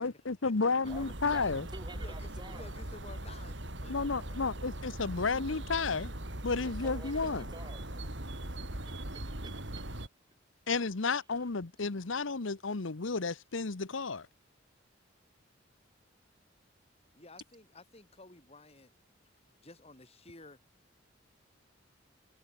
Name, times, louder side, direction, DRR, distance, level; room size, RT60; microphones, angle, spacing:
voice 1, 0.0-1.7 3.9-6.1 6.4-7.4 10.7-14.3, left 4 dB, 85° left, 1.0 m, -32 dB
voice 2, 0.8-2.7 6.5-9.9, right 2 dB, 25° right, 5.9 m, -51 dB
sound 1, 0.8-10.1, right 1 dB, 65° right, 4.5 m, -40 dB
voice 3, 1.9-4.4 17.2-18.9 19.2-19.3 19.6-20.6, left 2 dB, 30° left, 4.9 m, -53 dB
head